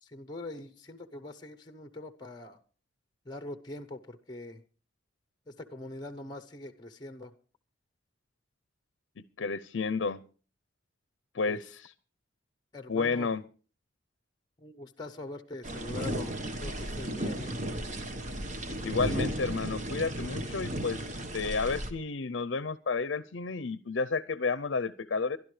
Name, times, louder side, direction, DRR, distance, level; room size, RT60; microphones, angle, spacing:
voice 1, 0.0-2.6 3.2-4.6 5.5-7.3 11.5-11.6 12.7-13.3 14.6-17.6, left 2 dB, 20° left, 10 dB, 0.8 m, -43 dB
voice 2, 9.2-10.2 11.3-11.9 12.9-13.4 18.8-25.4, left 4 dB, 70° left, 16 dB, 0.6 m, -31 dB
sound 1, 15.6-21.9, right 1 dB, 40° right, 1.2 m, -35 dB
23.0 x 12.0 x 3.2 m, 0.38 s
head